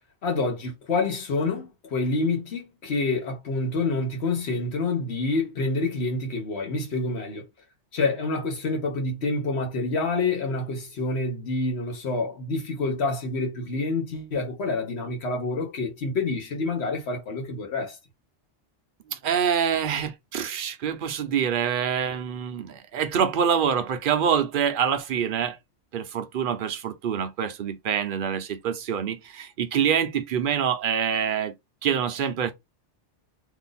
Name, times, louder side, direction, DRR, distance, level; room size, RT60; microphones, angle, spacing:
voice 1, 0.2-7.4 7.9-18.0, left 3 dB, 65° left, 1.4 m, -27 dB
voice 2, 19.1-25.6 25.9-31.5 31.8-32.5, right 8 dB, 55° right, 0.7 m, -26 dB
2.7 x 2.6 x 3.9 m
omnidirectional pair, 1.2 m